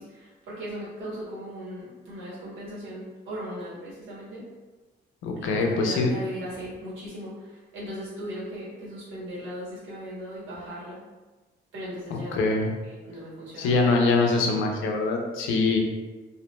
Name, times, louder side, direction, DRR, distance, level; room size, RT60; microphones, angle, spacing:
voice 1, 0.0-4.5 5.4-11.0 11.7-12.5 12.8-13.9, equal, 80° right, -7 dB, 1.3 m, -38 dB
voice 2, 5.2-6.1 12.1-12.7 13.6-15.8, left 3 dB, 90° left, 1 dB, 0.5 m, -23 dB
2.6 x 2.0 x 3.0 m, 1.2 s
cardioid pair, 90°, 20 cm